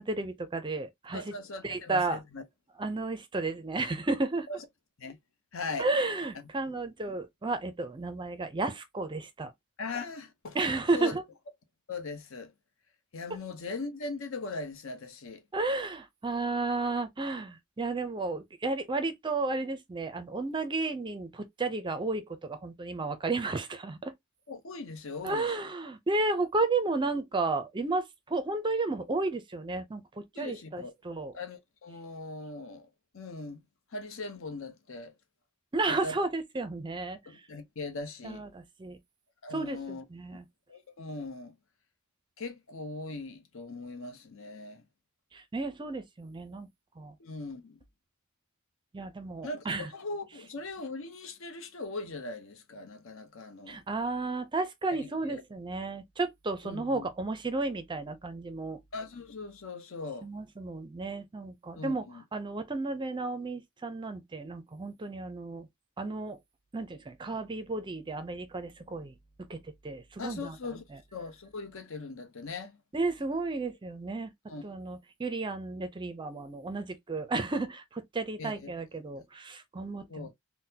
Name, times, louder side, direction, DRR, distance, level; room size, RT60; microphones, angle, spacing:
voice 1, 0.0-1.3 1.6-2.2 2.8-4.5 5.8-9.5 10.5-11.2 13.3-13.4 15.5-24.1 25.2-31.3 35.7-37.2 38.2-39.0 39.5-40.5 45.3-46.7 47.0-47.1 48.9-49.9 53.7-58.8 60.2-62.0 62.3-65.7 66.0-66.4 66.7-69.1 69.5-69.6 69.8-70.6 72.9-74.3 74.6-80.3, right 3 dB, 20° right, 0.5 m, -33 dB
voice 2, 1.1-2.4 5.0-5.2 5.5-5.9 6.7-6.8 7.1-7.2 9.8-10.6 10.9-11.2 11.9-12.5 13.1-15.4 24.5-25.5 30.4-30.9 31.3-32.9 33.1-33.6 33.9-35.1 36.0-36.1 37.3-38.4 39.4-40.0 40.3-40.4 40.7-41.5 42.4-44.8 47.2-47.8 49.4-53.8 54.9-55.4 56.6-57.1 58.9-60.3 61.7-62.2 70.2-70.8 71.1-72.8 74.5-74.6 78.4-78.7 80.1-80.3, left 3 dB, 65° left, 0.8 m, -40 dB
3.9 x 2.1 x 2.7 m
head